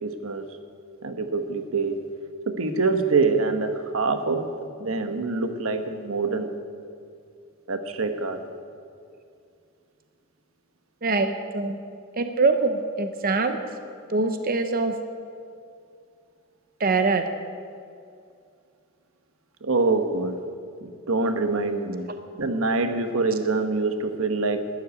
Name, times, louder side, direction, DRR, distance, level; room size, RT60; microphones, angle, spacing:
voice 1, 0.0-0.5 1.0-2.0 2.5-4.5 4.8-6.5 7.7-8.4 12.8-12.9 19.6-20.4 20.8-22.1 22.3-24.7, right 3 dB, 85° right, 7 dB, 1.2 m, -25 dB
voice 2, 11.0-11.8 12.2-13.6 14.1-14.9 16.8-17.2, right 3 dB, 45° right, 7 dB, 0.8 m, -23 dB
12.0 x 10.0 x 9.4 m, 2.3 s
head